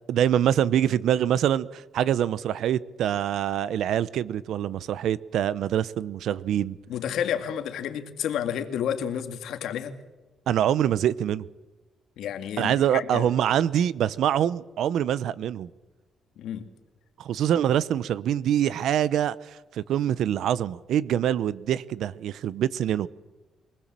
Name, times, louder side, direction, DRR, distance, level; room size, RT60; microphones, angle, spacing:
voice 1, 0.1-6.8 10.5-11.4 12.6-15.7 17.2-19.3 19.7-23.1, right 10 dB, 75° right, 19 dB, 0.8 m, -25 dB
voice 2, 6.9-10.0 12.2-13.3 16.4-16.7, left 9 dB, 80° left, 8 dB, 2.1 m, -30 dB
23.5 x 19.5 x 7.6 m, 1.1 s
cardioid pair, 120°, 0 cm